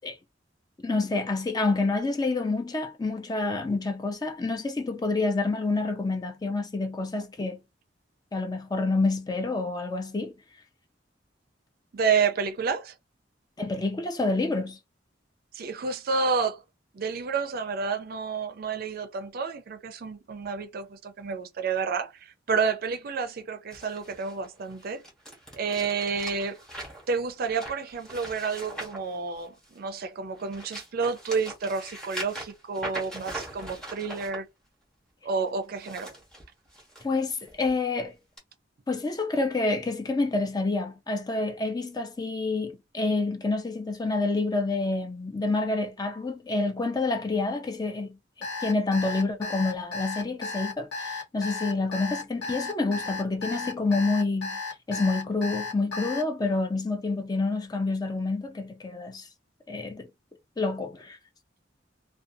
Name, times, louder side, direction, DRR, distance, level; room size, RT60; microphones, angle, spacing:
voice 1, 0.8-7.6 8.3-10.3 13.6-14.8 37.0-38.2 38.9-48.2 48.6-54.6 54.9-59.3 59.7-60.1 60.6-61.2, left 3 dB, 20° left, 0.4 m, -28 dB
voice 2, 11.9-12.9 15.5-16.6 16.9-25.0 25.5-26.6 27.1-34.5 35.2-36.2, right 5 dB, 55° right, 0.4 m, -30 dB
sound 1, 23.7-29.8 30.3-34.4 35.6-37.0 37.5-37.7 38.4-38.5, right 1 dB, 5° left, 1.1 m, -41 dB
Alarm, 48.4-56.2, left 3 dB, 70° left, 0.8 m, -34 dB
2.5 x 2.2 x 2.6 m
head